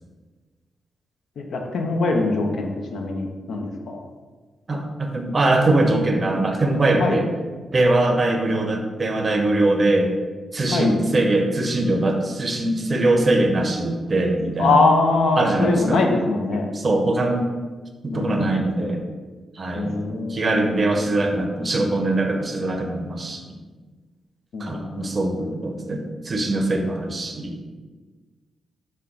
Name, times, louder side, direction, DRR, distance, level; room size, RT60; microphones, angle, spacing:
voice 1, 1.4-4.1 7.0-7.2 10.7-11.0 14.6-16.7 18.1-18.9 19.8-20.9 24.5-25.1, left 3 dB, 75° left, 3 dB, 0.6 m, -23 dB
voice 2, 4.7-7.3 7.7-10.1 10.5-14.8 15.4-16.0 16.7-17.5 18.0-19.0 19.6-23.6 24.6-27.6, right 2 dB, 35° right, 4 dB, 0.5 m, -22 dB
5.7 x 2.2 x 3.8 m, 1.3 s
cardioid pair, 95°, 0 cm